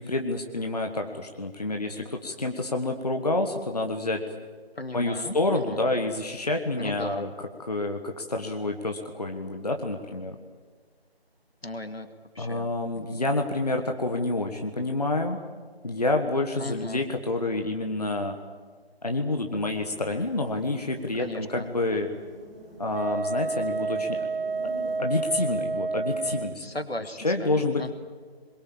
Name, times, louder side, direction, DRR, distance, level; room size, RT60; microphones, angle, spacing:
voice 1, 0.0-4.2 4.9-10.3 12.4-15.4 15.8-18.4 19.0-22.1 22.8-24.2 25.0-26.6 27.2-27.9, left 2 dB, 40° left, 4 dB, 1.5 m, -28 dB
voice 2, 4.8-5.8 6.8-7.3 11.6-12.1 12.3-12.7 12.9-13.3 16.6-17.0 21.1-21.7 26.6-27.9, left 2 dB, 70° left, 8 dB, 2.3 m, -37 dB
sound 1, 19.6-25.0, right 1 dB, 5° right, 1.6 m, -46 dB
Wind instrument woodwind instrument, 22.9-26.6, right 3 dB, 60° right, 0.8 m, -29 dB
24.0 x 22.0 x 8.7 m, 1.5 s
figure-of-eight pair, 165°, 31 cm